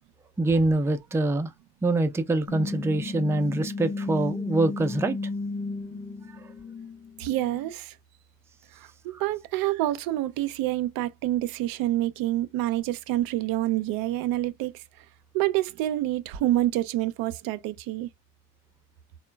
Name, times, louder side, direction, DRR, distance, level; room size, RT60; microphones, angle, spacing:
voice 1, 0.4-1.5 1.8-5.2 9.1-9.2, right 2 dB, 5° right, 0.4 m, -25 dB
sound 1, 2.5-7.7, left 3 dB, 30° left, 1.0 m, -34 dB
voice 2, 7.2-7.9 8.7-14.8 15.3-18.1, right 15 dB, 70° right, 0.5 m, -27 dB
3.6 x 2.2 x 2.2 m
supercardioid pair, 65°, 37 cm